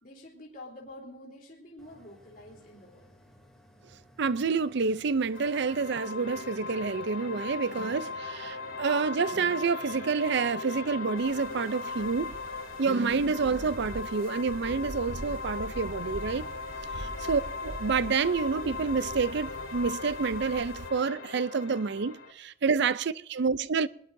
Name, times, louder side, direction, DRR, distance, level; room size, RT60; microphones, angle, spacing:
voice 1, 0.0-3.1 17.0-17.3, left 1 dB, 45° left, 3.6 m, -48 dB
sound 1, 1.8-14.8, equal, 5° left, 2.9 m, -58 dB
voice 2, 4.2-12.4 12.8-16.5 17.0-23.9, right 5 dB, 60° right, 0.5 m, -28 dB
sound 2, 5.3-22.3, left 4 dB, 85° left, 2.8 m, -39 dB
sound 3, 11.2-20.9, right 1 dB, 90° right, 1.3 m, -44 dB
23.5 x 21.0 x 2.7 m
head